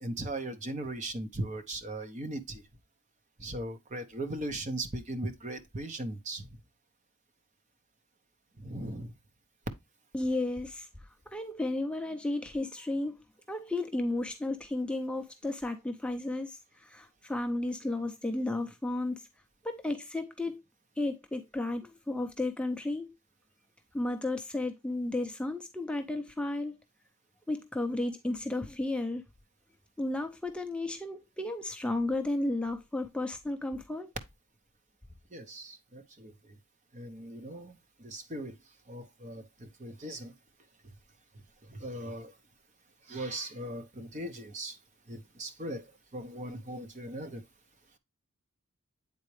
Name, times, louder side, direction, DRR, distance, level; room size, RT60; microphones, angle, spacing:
voice 1, 0.0-2.6 3.4-6.4 8.6-9.1 35.3-36.3 36.9-37.7 38.0-38.5 38.9-40.3 41.7-42.3 43.1-44.8 45.1-45.8 46.1-47.4, right 1 dB, 35° right, 0.8 m, -38 dB
voice 2, 10.1-10.9 11.3-13.2 13.5-19.3 19.6-20.6 21.0-23.1 23.9-26.8 27.5-29.2 30.0-34.2, left 2 dB, 5° left, 0.4 m, -33 dB
8.4 x 4.0 x 3.1 m
head